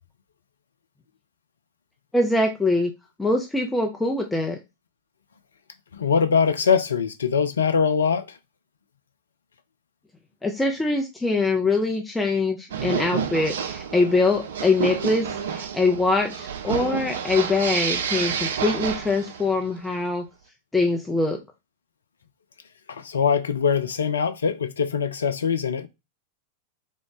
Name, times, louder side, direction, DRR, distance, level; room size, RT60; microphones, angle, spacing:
voice 1, 2.1-2.9 3.2-4.6 10.4-20.2 20.7-21.4, left 3 dB, 10° left, 0.4 m, -23 dB
voice 2, 5.9-8.4 22.9-25.9, left 6 dB, 70° left, 0.3 m, -22 dB
sound 1, 12.7-19.6, right 7 dB, 60° right, 0.3 m, -29 dB
3.6 x 2.0 x 3.1 m
figure-of-eight pair, 90°, 0 cm